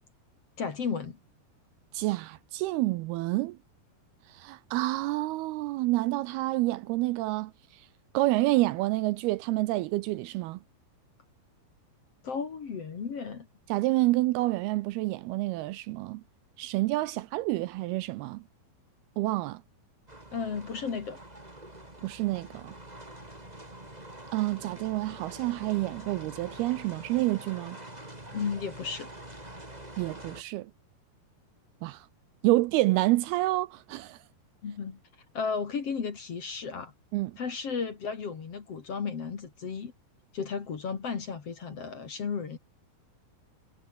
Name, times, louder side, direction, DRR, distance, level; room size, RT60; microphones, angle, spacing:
voice 1, 0.6-1.2 12.2-13.5 20.3-21.2 28.3-29.1 34.6-35.0 35.3-36.9 37.4-39.9 40.3-42.6, left 5 dB, 40° left, 2.8 m, -34 dB
voice 2, 1.9-3.6 4.3-7.9 8.1-10.6 13.7-16.2 16.6-18.4 19.2-19.6 22.0-22.7 24.3-27.8 30.0-30.7 31.8-32.1 32.4-34.2 37.1-37.4, right 18 dB, 80° right, 2.4 m, -28 dB
sound 1, 20.1-30.4, right 1 dB, 10° right, 4.5 m, -45 dB
omnidirectional pair, 4.9 m